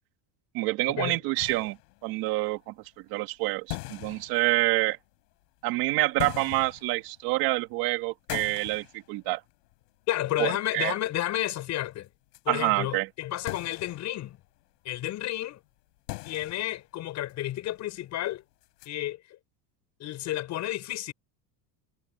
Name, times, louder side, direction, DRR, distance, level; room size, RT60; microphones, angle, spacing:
voice 1, 0.5-2.7 3.1-5.0 5.6-9.4 10.4-10.9 12.5-13.1, right 20 dB, 50° right, 1.7 m, -27 dB
sound 1, 1.4-2.5 3.3-3.4 3.7-5.0 6.0-7.7 8.3-9.9 10.2-10.3 11.9-12.0 12.3-12.4 13.5-14.6 15.6-15.7 16.0-17.0 17.3-17.4 17.8-17.9 18.6-18.9, left 25 dB, 80° left, 7.3 m, -40 dB
voice 2, 10.1-12.1 12.4-14.4 14.8-15.6 16.2-18.4 18.8-19.4 20.0-21.1, left 14 dB, 35° left, 6.8 m, -31 dB
cardioid pair, 175°, 47 cm